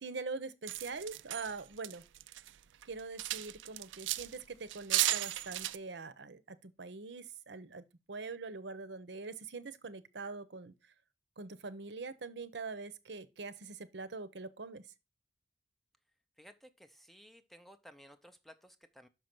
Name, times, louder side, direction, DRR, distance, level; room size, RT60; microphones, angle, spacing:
voice 1, 0.0-2.0 2.9-10.7 11.4-14.8, right 4 dB, 65° right, 0.8 m, -43 dB
sound 1, 0.7-2.5 2.8-4.4 4.7-5.8, right 15 dB, 85° right, 0.4 m, -34 dB
voice 2, 16.4-19.1, equal, ahead, 0.5 m, -57 dB
6.1 x 5.3 x 6.0 m
head